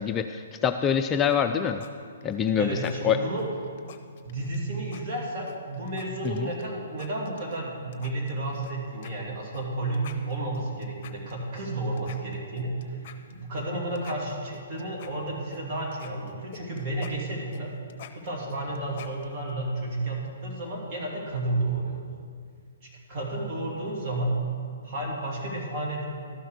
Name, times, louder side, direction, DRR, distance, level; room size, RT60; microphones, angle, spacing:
voice 1, 0.0-1.8 2.2-3.2 6.2-6.5, left 8 dB, 20° left, 7 dB, 0.3 m, -25 dB
sound 1, 1.3-1.9 2.2-2.5 2.8-2.9 3.4-4.6 4.9-5.0 5.5-6.7 7.0-7.6 7.9-8.7 9.0-9.1 9.5-9.6 9.9-11.7 12.0-13.7 14.0-15.6 15.9-19.5, left 9 dB, 40° left, 0.8 m, -46 dB
voice 2, 2.6-3.4 4.2-13.0 13.3-17.7 18.1-22.1 22.8-24.4 24.8-26.0, right 2 dB, 35° right, -4 dB, 3.0 m, -32 dB
12.5 x 5.8 x 6.6 m, 2.1 s
figure-of-eight pair, 130°, 0 cm